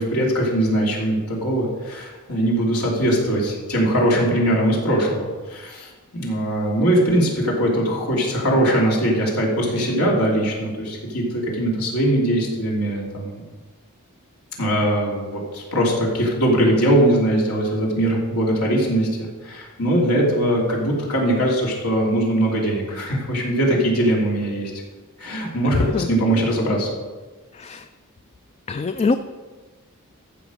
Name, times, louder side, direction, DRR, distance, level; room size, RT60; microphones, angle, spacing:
voice 1, 0.0-5.9 6.2-13.4 14.6-24.7 25.2-26.9, right 1 dB, 90° left, -3 dB, 3.0 m, -21 dB
voice 2, 25.7-26.1 27.5-27.9 28.7-29.2, left 4 dB, 30° left, 10 dB, 0.3 m, -23 dB
14.0 x 5.9 x 5.2 m, 1.3 s
head